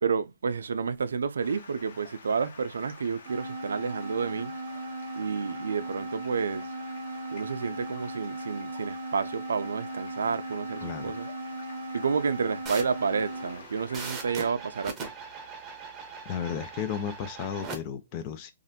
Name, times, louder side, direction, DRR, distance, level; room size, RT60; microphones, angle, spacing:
voice 1, 0.0-4.6 5.2-6.7 7.3-11.3 11.9-15.1, right 5 dB, 85° right, 0.4 m, -30 dB
Stream, 1.4-14.1, left 4 dB, 70° left, 1.1 m, -49 dB
sound 1, 3.3-13.6, right 2 dB, 45° right, 0.7 m, -37 dB
voice 2, 10.8-11.1 16.2-18.5, left 8 dB, 35° left, 0.6 m, -34 dB
sound 2, 12.6-17.8, right 4 dB, 20° right, 0.9 m, -41 dB
3.1 x 2.5 x 2.7 m
hypercardioid pair, 140°, 0 cm